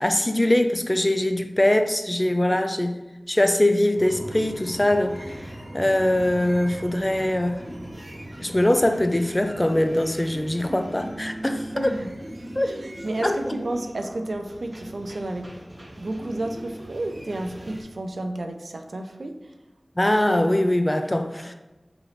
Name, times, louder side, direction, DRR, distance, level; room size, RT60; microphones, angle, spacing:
voice 1, 0.0-3.0 3.3-5.3 5.7-7.6 8.4-11.9 12.6-12.7 13.2-13.4 20.0-21.5, left 1 dB, 25° left, 7 dB, 0.4 m, -22 dB
sound 1, 3.9-17.8, right 1 dB, 40° right, 0.8 m, -39 dB
voice 2, 11.7-12.1 12.6-15.5 16.0-19.5, right 1 dB, 80° right, 6 dB, 0.4 m, -31 dB
3.8 x 3.0 x 3.2 m, 1.1 s
wide cardioid pair, 50°, 0 cm